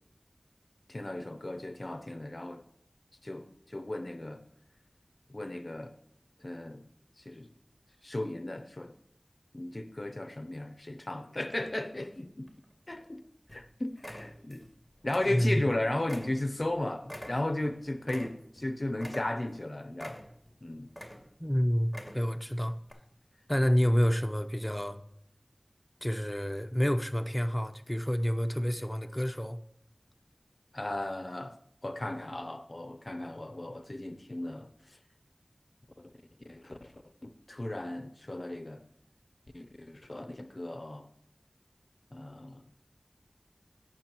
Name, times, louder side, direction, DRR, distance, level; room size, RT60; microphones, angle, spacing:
voice 1, 0.9-2.6 3.2-4.4 5.3-5.9 6.4-6.8 7.2-7.5 8.0-8.9 9.5-12.5 12.9-13.2 13.5-14.7 15.0-20.2 20.6-20.9 30.7-31.6 31.8-34.7 36.0-36.1 36.4-38.8 39.5-41.1 42.1-42.6, left 1 dB, 55° left, 0.6 m, -35 dB
sound 1, 12.5-13.1 13.5-13.7 14.0-14.7 15.0-15.7 16.1-18.6 19.0-19.6 20.0-20.5 20.9-21.5 21.8-22.4 22.9-23.0, equal, ahead, 2.3 m, -45 dB
voice 2, 15.2-15.7 21.4-22.7 23.5-25.0 26.0-29.6, equal, 15° left, 0.7 m, -28 dB
18.0 x 6.1 x 3.0 m
wide cardioid pair, 40°, 0 cm